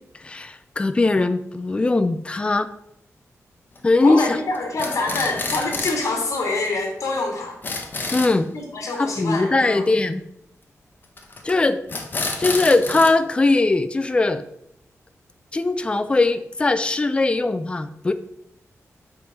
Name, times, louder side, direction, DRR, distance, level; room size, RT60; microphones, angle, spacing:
voice 1, 0.2-2.7 3.8-4.4 8.1-8.5 9.0-10.2 11.4-11.8 12.4-14.4 15.5-18.1, left 2 dB, 20° left, 11 dB, 0.5 m, -20 dB
sound 1, 3.8-4.2 4.5-6.1 6.4-6.5 6.7-6.8 7.0-7.1 7.4-8.4 11.2-11.5 11.9-13.1, left 3 dB, 35° left, 1.2 m, -29 dB
voice 2, 4.0-7.6 8.5-9.8, left 3 dB, 65° left, 1 dB, 2.2 m, -25 dB
8.1 x 5.5 x 6.0 m, 0.77 s
wide cardioid pair, 170°, 5 cm